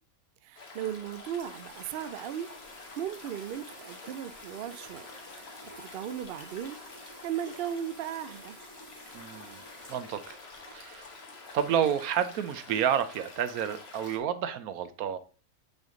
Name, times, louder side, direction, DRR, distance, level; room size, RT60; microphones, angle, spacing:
voice 1, 0.4-2.5 3.0-5.1 5.8-6.8 7.2-8.6, right 10 dB, 70° right, 0.5 m, -36 dB
Stream, 0.5-14.2, left 3 dB, 45° left, 1.4 m, -48 dB
sound 1, 1.1-11.1, right 1 dB, 45° right, 3.0 m, -53 dB
voice 2, 9.1-9.6 9.9-10.4 10.7-11.1 11.5-15.2, right 9 dB, 90° right, 1.2 m, -30 dB
6.1 x 5.3 x 3.8 m
omnidirectional pair, 1.5 m